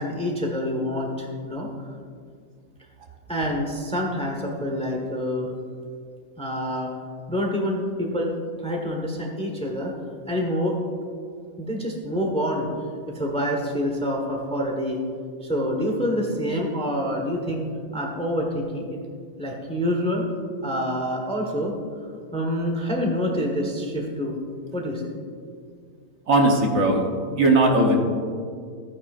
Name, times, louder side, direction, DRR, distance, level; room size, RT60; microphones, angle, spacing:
voice 1, 0.0-1.7 3.3-5.5 6.4-6.9 7.3-8.3 8.6-9.9 10.3-10.9 11.6-12.7 13.1-15.0 15.4-19.0 19.4-20.2 20.6-21.7 22.3-24.4 24.7-25.1, equal, 5° left, 0 dB, 1.1 m, -27 dB
voice 2, 26.3-27.0 27.4-28.0, right 1 dB, 65° right, 1 dB, 1.5 m, -18 dB
14.5 x 9.6 x 2.5 m, 2.1 s
omnidirectional pair, 1.5 m